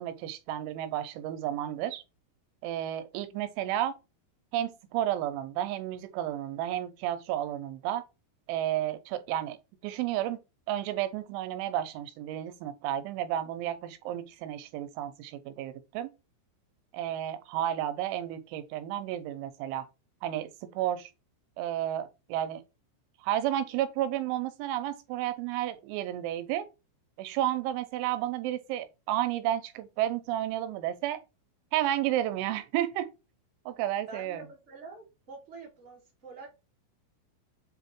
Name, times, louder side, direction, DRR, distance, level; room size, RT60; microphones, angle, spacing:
voice 1, 0.0-2.0 2.6-4.0 4.5-8.0 8.5-9.6 9.8-10.4 10.7-16.1 16.9-19.9 20.2-21.1 21.6-22.6 23.2-26.7 27.2-31.2 31.7-33.1 33.7-34.4, right 12 dB, 80° right, 3.1 m, -32 dB
voice 2, 34.0-36.5, right 3 dB, 50° right, 0.8 m, -46 dB
7.6 x 3.1 x 4.4 m
omnidirectional pair, 5.7 m